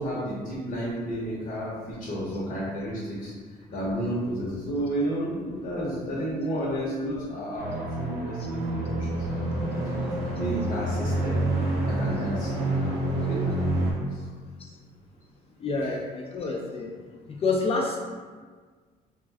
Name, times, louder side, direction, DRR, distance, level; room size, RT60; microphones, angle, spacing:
voice 1, 0.0-3.3 3.7-10.1 10.3-11.3 11.8-14.0, equal, 55° left, -7 dB, 0.9 m, -32 dB
sound 1, 7.6-13.9, right 2 dB, 75° right, 0.7 m, -28 dB
voice 2, 15.6-16.9 17.3-18.0, left 3 dB, 35° left, -1 dB, 0.4 m, -28 dB
2.5 x 2.3 x 3.2 m, 1.5 s
cardioid pair, 110°, 17 cm